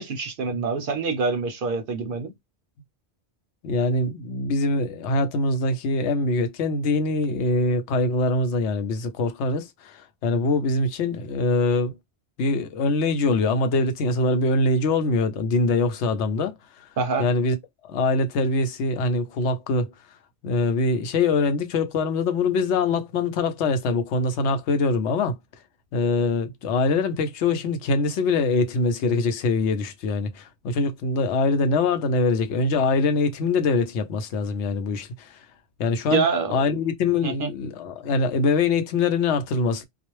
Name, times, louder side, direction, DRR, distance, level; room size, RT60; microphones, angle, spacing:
voice 1, 0.0-2.3 17.0-17.2 36.1-36.6 37.2-37.5, right 4 dB, 60° right, 0.7 m, -25 dB
voice 2, 3.6-11.9 12.4-16.6 17.2-17.6 17.8-19.9 20.4-25.4 25.9-35.4 35.8-39.8, left 3 dB, 85° left, 0.9 m, -23 dB
2.3 x 2.0 x 3.0 m
omnidirectional pair, 1.1 m